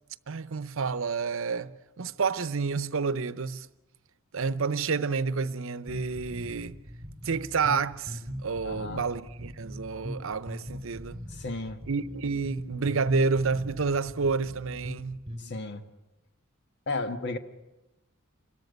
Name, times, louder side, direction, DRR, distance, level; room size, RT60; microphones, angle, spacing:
voice 1, 0.3-1.7 2.0-3.7 4.3-6.8 7.2-11.2 11.9-15.2, right 4 dB, 70° right, 0.8 m, -29 dB
sound 1, 5.9-15.4, equal, 20° right, 4.3 m, -40 dB
voice 2, 8.6-9.0 11.3-11.8 15.4-15.8 16.9-17.4, left 3 dB, 55° left, 1.5 m, -33 dB
28.0 x 13.5 x 9.4 m
head